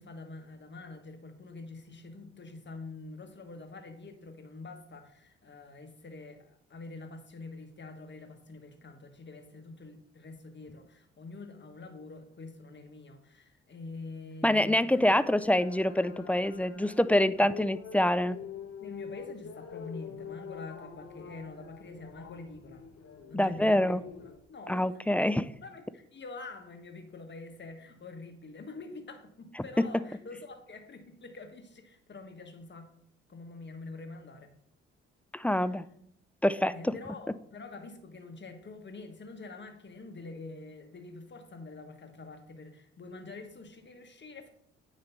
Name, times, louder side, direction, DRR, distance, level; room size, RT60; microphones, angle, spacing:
voice 1, 0.0-15.2 17.3-17.5 18.8-22.8 23.3-25.0 25.6-32.9 33.3-34.5 35.5-35.8 36.7-44.5, left 3 dB, 35° left, 6 dB, 1.5 m, -46 dB
voice 2, 14.4-18.4 23.3-24.0 24.7-25.5 35.3-35.8 36.4-36.7, left 1 dB, 5° left, 15 dB, 0.4 m, -26 dB
sound 1, 15.2-24.4, left 7 dB, 50° left, 1.2 m, -45 dB
9.4 x 3.2 x 5.6 m, 0.71 s
hypercardioid pair, 45°, 30 cm